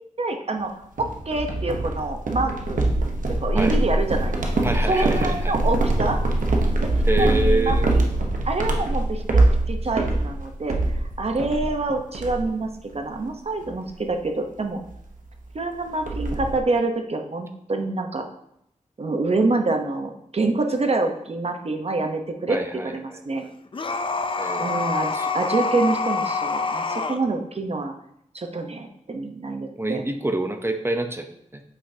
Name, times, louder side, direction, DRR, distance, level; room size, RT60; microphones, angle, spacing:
voice 1, 0.2-0.7 1.0-2.8 3.4-4.3 4.9-6.2 6.8-6.9 7.2-8.1 8.4-12.7 12.9-14.8 15.5-18.2 19.0-23.4 24.6-27.9 28.3-30.0, right 3 dB, 50° right, 4 dB, 0.9 m, -26 dB
sound 1, 1.0-11.8 12.1-12.6 12.9-13.2 13.6-13.8 14.9-15.0 15.3-15.4 15.6-16.6, right 2 dB, 90° right, 0.9 m, -23 dB
voice 2, 4.6-5.5 7.0-8.0 22.5-23.5 24.4-24.7 25.1-25.3 29.8-31.6, right 2 dB, 20° right, 6 dB, 0.6 m, -27 dB
sound 2, 23.7-27.2, left 4 dB, 40° left, 0.5 m, -26 dB
8.4 x 5.6 x 2.8 m, 0.76 s
wide cardioid pair, 100°, 13 cm